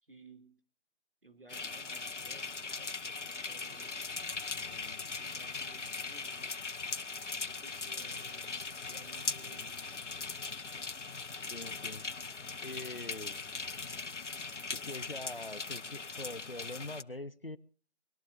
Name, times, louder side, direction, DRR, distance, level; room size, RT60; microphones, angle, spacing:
voice 1, 0.0-0.6 1.2-4.0 4.5-6.6 7.3-9.8 13.3-13.5, right 2 dB, 50° right, 6 dB, 2.5 m, -58 dB
sound 1, 1.5-17.0, left 4 dB, 85° left, 0.8 m, -40 dB
voice 2, 11.5-12.1 12.6-13.4 14.7-17.6, left 2 dB, 50° left, 18 dB, 0.7 m, -43 dB
25.0 x 20.5 x 2.5 m, 0.38 s
figure-of-eight pair, 175°, 35 cm